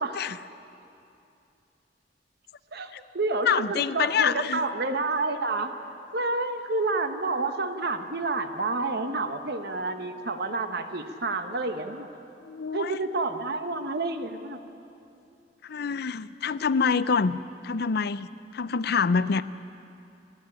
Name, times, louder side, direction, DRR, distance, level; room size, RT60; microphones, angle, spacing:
voice 1, 2.7-5.7 6.1-12.1 12.7-14.6, right 3 dB, 60° right, 8 dB, 1.3 m, -29 dB
voice 2, 3.4-4.6 12.4-13.0 15.6-17.4 17.6-19.4, left 5 dB, 60° left, 15 dB, 0.5 m, -26 dB
27.5 x 9.7 x 10.0 m, 2.7 s
head